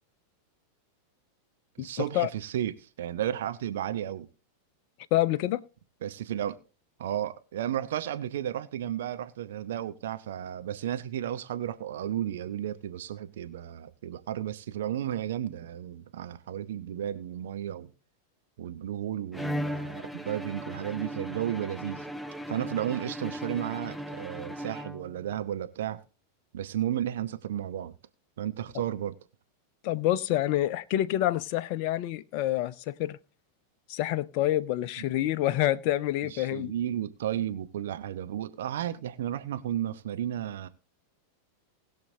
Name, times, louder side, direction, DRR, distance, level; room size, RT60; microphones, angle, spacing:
voice 1, 1.8-4.3 6.0-6.6 7.0-17.9 18.6-22.1 22.5-26.0 26.5-27.9 28.4-29.1 36.2-40.7, right 11 dB, 60° right, 0.8 m, -33 dB
voice 2, 5.1-5.6 29.8-33.2 33.9-36.7, left 14 dB, 45° left, 0.6 m, -27 dB
Bowed string instrument, 19.3-25.4, equal, ahead, 0.6 m, -37 dB
20.0 x 6.8 x 2.7 m
figure-of-eight pair, 90°, 0 cm